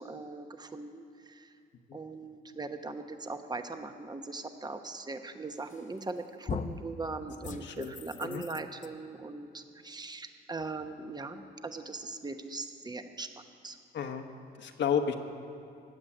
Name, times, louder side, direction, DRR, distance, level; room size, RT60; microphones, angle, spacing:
voice 1, 0.0-1.5 1.9-13.8, right 3 dB, 20° right, 7 dB, 1.1 m, -40 dB
sound 1, 5.7-6.1 6.5-6.9 7.4-8.9, left 5 dB, 40° left, 0.7 m, -39 dB
voice 2, 7.5-7.9 8.2-8.4 13.9-14.3 14.6-15.1, left 7 dB, 65° left, 5 dB, 1.2 m, -32 dB
16.0 x 7.7 x 9.9 m, 2.5 s
cardioid pair, 90°, 20 cm